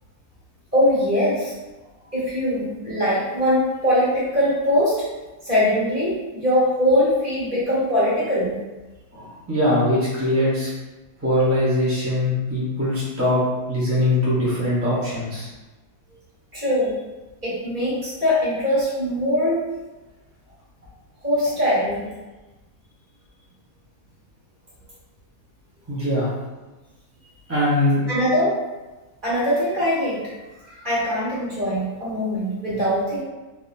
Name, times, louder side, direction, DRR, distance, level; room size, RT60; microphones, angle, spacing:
voice 1, 0.7-1.5 2.1-5.0 5.4-8.5 16.5-17.0 17.4-19.6 21.2-22.1 28.1-28.5 29.2-30.2 30.8-33.2, equal, 35° right, -10 dB, 1.7 m, -21 dB
voice 2, 9.1-10.7 11.2-13.4 13.7-15.5 25.9-26.3 27.5-28.0 30.7-30.9, left 1 dB, 15° right, -9 dB, 0.5 m, -22 dB
3.7 x 2.8 x 2.6 m, 1.1 s
omnidirectional pair, 1.6 m